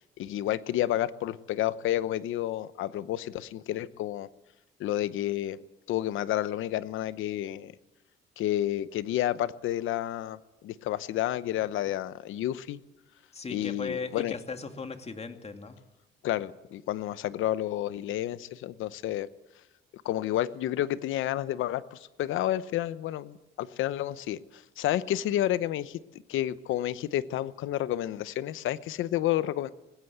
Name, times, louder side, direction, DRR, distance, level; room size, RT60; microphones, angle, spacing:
voice 1, 0.2-4.3 4.8-5.6 5.9-7.7 8.4-10.4 10.6-12.8 13.5-14.3 16.2-19.3 20.0-24.4 24.8-26.0 26.3-29.7, left 13 dB, 85° left, 16 dB, 0.9 m, -30 dB
voice 2, 13.3-15.8, left 4 dB, 30° left, 7 dB, 2.3 m, -38 dB
19.5 x 16.5 x 8.0 m, 1.0 s
cardioid pair, 90°, 20 cm